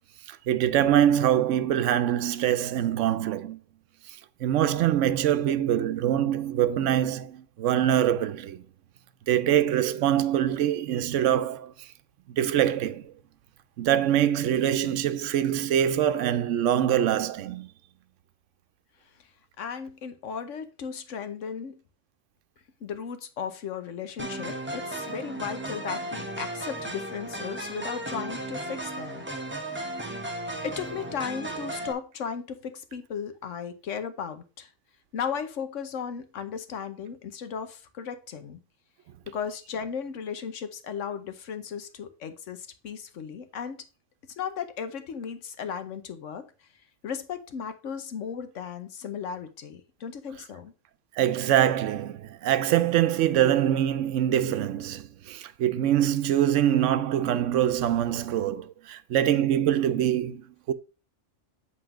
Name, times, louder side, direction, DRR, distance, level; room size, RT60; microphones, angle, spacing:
voice 1, 0.3-3.6 4.4-8.6 9.3-11.9 12.3-13.1 13.8-17.7 51.2-60.7, right 11 dB, 80° right, 0.9 m, -24 dB
voice 2, 19.6-21.8 22.8-29.3 30.6-34.7 35.1-38.6 39.3-43.8 44.4-46.5 47.0-50.7, left 7 dB, 85° left, 1.2 m, -35 dB
sound 1, 24.2-31.9, right 1 dB, 10° right, 0.8 m, -35 dB
7.9 x 3.9 x 4.9 m
omnidirectional pair, 1.2 m